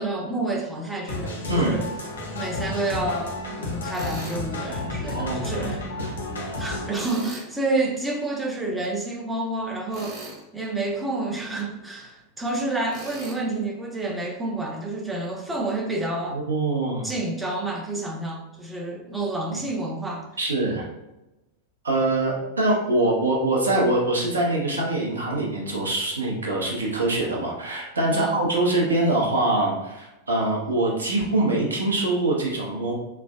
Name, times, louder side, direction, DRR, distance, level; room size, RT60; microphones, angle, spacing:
voice 1, 0.0-1.9 2.3-5.9 6.6-16.4 17.0-20.3 28.1-28.4, right 2 dB, 10° right, 0 dB, 0.5 m, -29 dB
sound 1, 1.1-6.9, left 2 dB, 70° left, 0.6 m, -32 dB
Tools, 3.9-4.4 6.9-7.5 9.9-10.4 12.9-13.4, right 1 dB, 25° right, 1.1 m, -38 dB
voice 2, 5.1-5.5 6.0-6.1 16.3-17.0 20.4-20.8 21.8-32.9, right 2 dB, 75° right, -2 dB, 0.7 m, -24 dB
3.2 x 2.1 x 2.3 m, 0.99 s
figure-of-eight pair, 90°, 0 cm